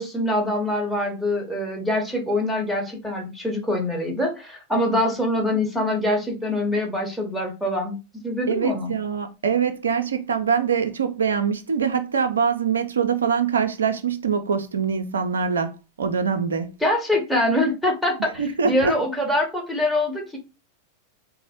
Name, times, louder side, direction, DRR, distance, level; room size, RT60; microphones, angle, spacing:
voice 1, 0.0-8.9 16.8-20.4, left 1 dB, ahead, 1.0 m, -24 dB
voice 2, 8.5-16.7 18.4-19.0, right 6 dB, 70° right, 0.4 m, -24 dB
3.9 x 2.1 x 2.8 m
figure-of-eight pair, 90°, 0 cm